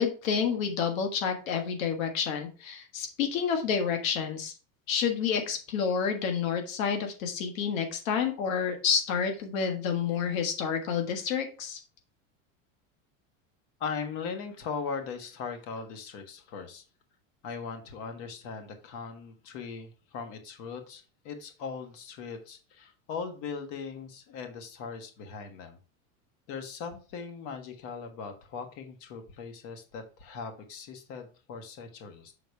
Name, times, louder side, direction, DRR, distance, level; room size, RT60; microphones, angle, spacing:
voice 1, 0.0-4.5 4.9-11.8, left 6 dB, 80° left, 4 dB, 1.6 m, -29 dB
voice 2, 13.8-16.8 17.4-25.8 26.5-32.3, left 5 dB, 45° left, 6 dB, 1.5 m, -39 dB
6.8 x 4.0 x 4.6 m, 0.35 s
supercardioid pair, 165°, 40 cm